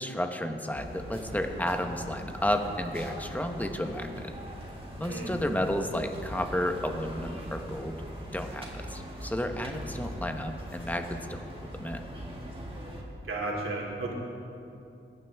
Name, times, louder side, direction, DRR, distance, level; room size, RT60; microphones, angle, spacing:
voice 1, 0.0-4.3 5.0-8.0 8.3-11.4 11.7-12.0, left 1 dB, 5° left, 5 dB, 1.0 m, -32 dB
sound 1, 0.7-13.0, equal, 25° right, 2.1 m, -41 dB
voice 2, 13.3-14.1, right 2 dB, 85° right, -2 dB, 2.6 m, -33 dB
21.5 x 9.7 x 3.5 m, 2.7 s
wide cardioid pair, 100°, 21 cm